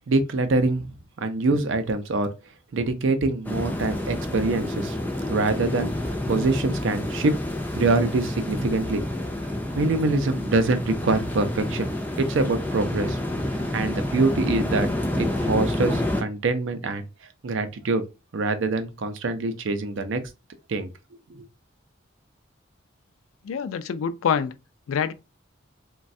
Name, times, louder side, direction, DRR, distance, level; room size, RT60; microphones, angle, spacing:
voice 1, 0.1-0.9 1.2-2.3 2.7-5.0 5.3-7.3 7.7-9.2 9.7-11.9 12.2-13.2 13.5-14.9 15.2-17.1 17.4-18.0 18.3-20.2 20.7-20.9 21.3-21.4, right 3 dB, 70° right, 0.5 m, -25 dB
sound 1, 3.4-16.2, left 1 dB, 10° left, 0.3 m, -28 dB
voice 2, 23.4-24.5 24.9-25.1, left 7 dB, 90° left, 0.3 m, -25 dB
3.1 x 2.2 x 2.6 m
head